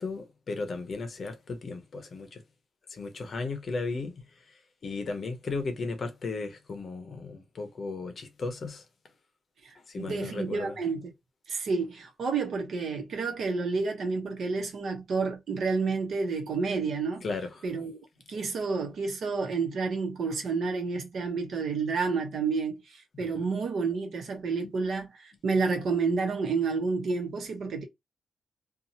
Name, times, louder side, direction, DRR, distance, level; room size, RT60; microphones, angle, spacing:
voice 1, 0.0-2.4 2.9-8.8 9.8-10.8 17.2-17.7 23.1-23.5, left 3 dB, 45° left, 0.7 m, -36 dB
voice 2, 9.6-11.0 11.5-17.2 17.6-17.9 18.3-27.8, right 4 dB, 65° right, 0.9 m, -30 dB
2.8 x 2.3 x 2.7 m
wide cardioid pair, 150°, 0 cm